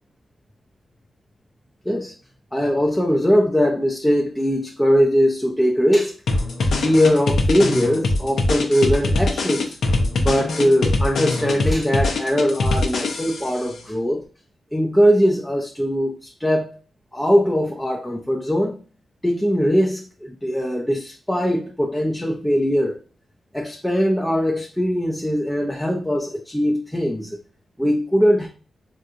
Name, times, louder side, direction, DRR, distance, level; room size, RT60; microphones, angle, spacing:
voice 1, 2.5-6.1 6.8-9.7 10.2-14.2 14.7-16.8 17.1-18.8 19.2-23.0 23.5-27.4 27.8-28.5, equal, 5° left, 0.5 m, -20 dB
sound 1, 6.3-13.6, left 2 dB, 80° left, 0.6 m, -22 dB
3.9 x 2.4 x 2.7 m
cardioid pair, 95°, 0 cm